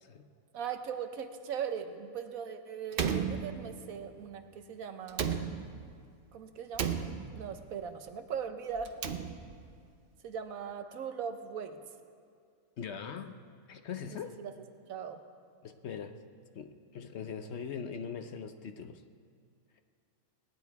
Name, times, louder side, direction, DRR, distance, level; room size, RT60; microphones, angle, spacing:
voice 1, 0.5-5.3 6.3-6.9 7.3-8.9 10.2-11.8 14.4-14.5 14.9-15.2, right 7 dB, 75° right, 8 dB, 1.3 m, -39 dB
Slam, 2.9-4.1 5.1-6.0 6.7-7.6 8.8-9.7, right 7 dB, 50° right, 0.7 m, -34 dB
voice 2, 12.8-13.4 13.7-14.4 15.6-16.2 16.5-19.0, left 7 dB, 60° left, 8 dB, 0.8 m, -41 dB
19.0 x 10.5 x 4.7 m, 2.3 s
omnidirectional pair, 1.5 m